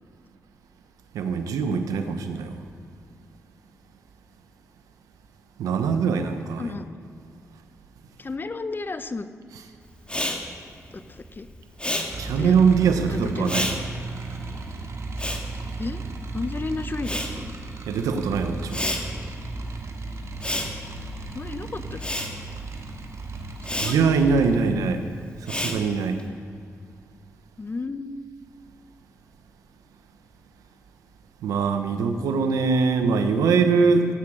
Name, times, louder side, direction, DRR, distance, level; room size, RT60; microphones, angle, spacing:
voice 1, 1.1-2.5 5.6-6.7 12.2-13.7 17.9-18.9 23.8-25.0 25.5-26.2 31.4-34.1, right 5 dB, 90° right, 8 dB, 1.0 m, -22 dB
voice 2, 8.2-9.3 10.9-11.5 12.4-12.6 13.1-13.8 15.8-16.0 16.3-17.5 21.3-22.0 23.8-24.0 27.6-28.3, left 3 dB, 35° left, 11 dB, 0.9 m, -33 dB
Respiratory sounds, 10.0-16.5 16.8-26.2, left 1 dB, 20° left, 2.1 m, -32 dB
sound 1, 12.1-24.6, right 3 dB, 55° right, 1.6 m, -35 dB
16.0 x 8.8 x 6.4 m, 2.2 s
supercardioid pair, 50°, 6 cm